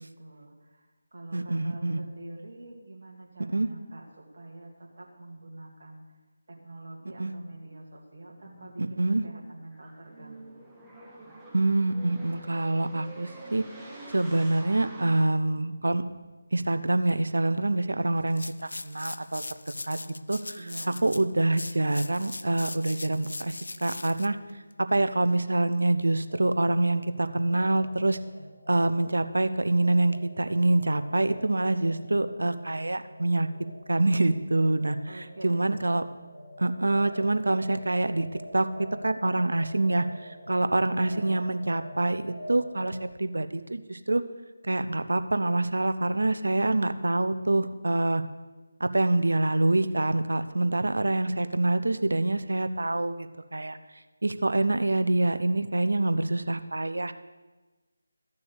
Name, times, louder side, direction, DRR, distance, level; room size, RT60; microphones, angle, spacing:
voice 1, 0.0-6.2 6.5-10.6 20.6-21.0 31.9-32.4 35.1-35.8 40.9-41.4, right 2 dB, 55° right, -1 dB, 2.2 m, -45 dB
voice 2, 1.3-2.0 3.5-3.7 7.2-7.3 8.8-9.2 11.5-13.6 14.1-16.0 16.5-19.4 19.9-20.0 20.3-24.4 24.8-28.2 28.7-33.5 33.9-36.0 36.6-38.3 38.5-44.2 44.6-48.2 48.8-53.3 53.5-53.8 54.2-57.1, right 2 dB, 70° right, 11 dB, 0.8 m, -26 dB
sound 1, 8.2-15.3, right 2 dB, 5° right, 1.3 m, -47 dB
sound 2, 18.3-25.3, left 2 dB, 70° left, 0.5 m, -40 dB
sound 3, 26.3-43.0, equal, 30° left, 4.6 m, -47 dB
14.0 x 6.9 x 6.7 m, 1.2 s
figure-of-eight pair, 160°, 0 cm